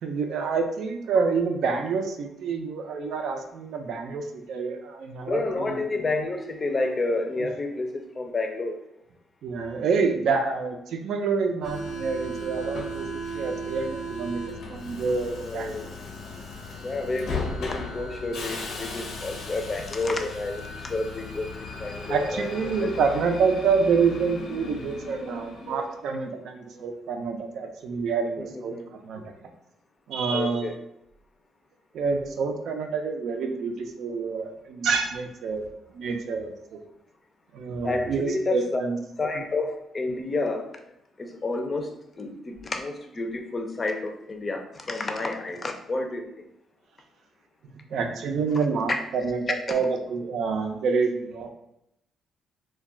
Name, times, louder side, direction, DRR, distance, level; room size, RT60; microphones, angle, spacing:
voice 1, 0.0-5.8 9.4-13.1 13.3-15.9 22.1-29.2 30.1-30.7 31.9-35.7 35.9-36.8 37.5-39.0 47.9-51.5, right 5 dB, 70° right, 4 dB, 0.4 m, -27 dB
voice 2, 5.3-8.8 15.4-15.9 16.8-23.4 28.4-28.9 30.3-30.8 37.8-38.8 39.2-40.7 41.2-46.2 49.7-49.8, left 2 dB, 30° left, 4 dB, 0.5 m, -30 dB
Subway metro underground, 11.6-26.0, left 1 dB, 70° left, 0.6 m, -36 dB
2.3 x 2.2 x 3.6 m, 0.81 s
cardioid pair, 90°, 0 cm